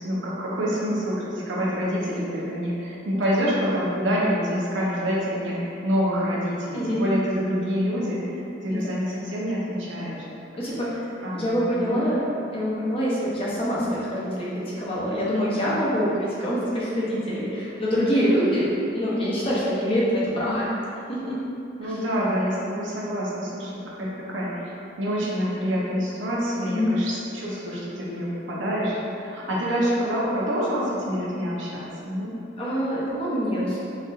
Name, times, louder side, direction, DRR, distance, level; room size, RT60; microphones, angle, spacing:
voice 1, 0.0-10.2 10.7-10.8 11.2-12.2 18.0-18.3 21.8-32.3, equal, 90° right, -6 dB, 0.8 m, -27 dB
voice 2, 10.6-11.0 11.3-12.2 12.5-18.7 18.9-20.7 21.1-21.4 21.8-21.9 26.6-27.0 32.6-33.9, equal, 30° left, -8 dB, 0.7 m, -25 dB
4.2 x 2.6 x 2.5 m, 2.7 s
head